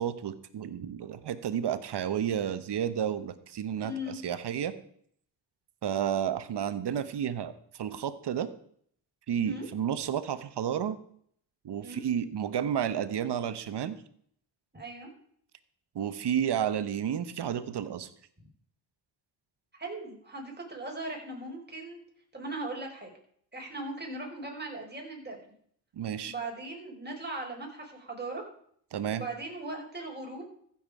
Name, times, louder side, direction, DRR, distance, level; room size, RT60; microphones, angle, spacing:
voice 1, 0.0-4.7 5.8-8.5 9.3-11.0 11.6-14.0 15.9-18.1 25.9-26.3 28.9-29.2, right 9 dB, 60° right, 13 dB, 1.1 m, -31 dB
voice 2, 3.8-4.2 9.4-9.7 11.8-12.0 14.7-15.1 19.7-22.0 22.3-23.1 23.5-25.4 26.2-28.4 29.1-30.4, right 2 dB, 20° right, 0 dB, 4.7 m, -39 dB
14.5 x 7.4 x 4.8 m, 0.63 s
supercardioid pair, 60°, 45 cm